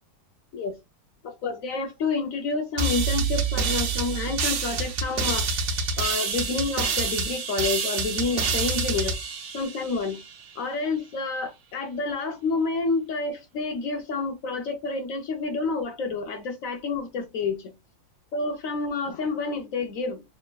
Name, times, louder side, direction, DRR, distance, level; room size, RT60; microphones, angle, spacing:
voice 1, 1.2-5.6 6.0-9.2 9.5-10.2 10.6-17.7 18.3-20.2, left 4 dB, 65° left, 0.9 m, -29 dB
sound 1, 2.8-10.3, right 5 dB, 60° right, 0.7 m, -27 dB
4.5 x 3.5 x 2.2 m
omnidirectional pair, 2.1 m